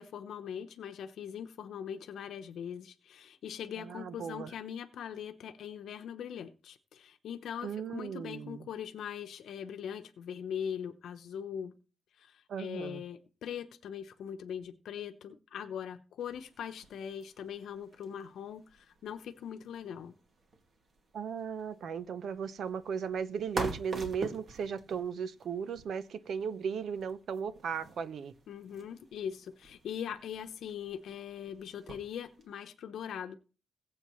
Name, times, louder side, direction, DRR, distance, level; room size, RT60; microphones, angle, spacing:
voice 1, 0.0-11.7 12.6-20.2 28.5-33.4, left 8 dB, 80° left, 0.9 m, -41 dB
voice 2, 3.8-4.5 7.6-8.7 12.5-13.0 21.1-28.3, right 6 dB, 60° right, 0.8 m, -36 dB
sound 1, 16.2-32.5, right 2 dB, 45° right, 2.2 m, -47 dB
21.0 x 7.8 x 3.1 m
wide cardioid pair, 155°, 0 cm